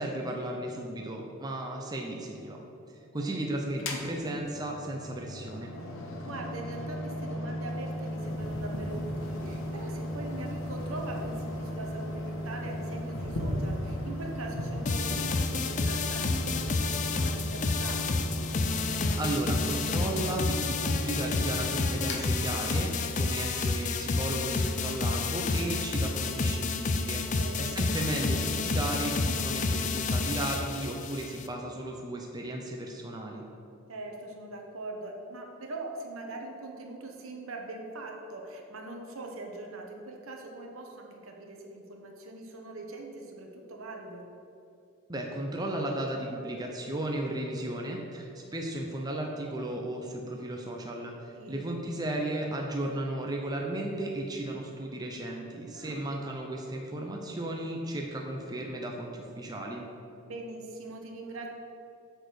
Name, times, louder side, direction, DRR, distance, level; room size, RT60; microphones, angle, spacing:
voice 1, 0.0-2.6 2.9-5.7 19.2-33.4 45.1-59.8, right 1 dB, 20° right, 0 dB, 0.5 m, -35 dB
Mechanical fan, 3.7-23.1, left 1 dB, 60° left, 0.9 m, -37 dB
voice 2, 6.2-18.3 27.3-27.7 33.9-44.2 51.4-51.6 55.7-56.1 60.2-61.5, right 2 dB, 70° right, 2 dB, 1.1 m, -42 dB
sound 1, 7.7-20.9, equal, 80° left, 1.3 m, -41 dB
sound 2, 14.9-31.5, left 3 dB, 35° left, 0.4 m, -30 dB
7.8 x 4.1 x 6.3 m, 2.7 s
head